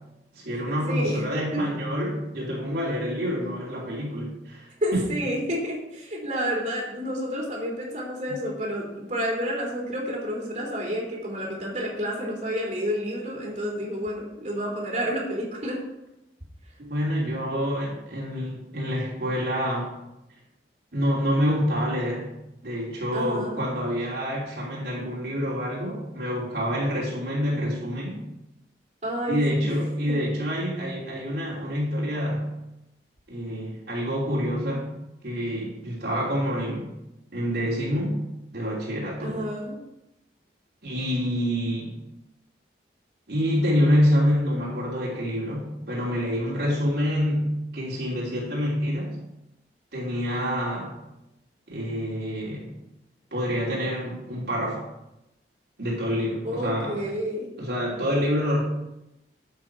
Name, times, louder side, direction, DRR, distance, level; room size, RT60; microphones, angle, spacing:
voice 1, 0.3-5.0 8.3-8.4 16.8-19.9 20.9-22.3 22.6-28.2 29.3-32.5 33.3-34.9 35.2-36.9 37.3-38.2 38.5-39.4 40.8-41.9 43.3-49.2 49.9-50.9 51.7-52.7 53.3-54.8 55.8-57.0 57.6-58.6, equal, 60° right, -5 dB, 3.2 m, -27 dB
voice 2, 0.9-1.3 1.5-1.6 4.8-15.8 23.1-23.6 29.0-29.8 30.1-30.2 39.2-39.8 56.4-57.5, equal, 40° right, -4 dB, 3.5 m, -30 dB
12.0 x 8.0 x 4.7 m, 0.90 s
head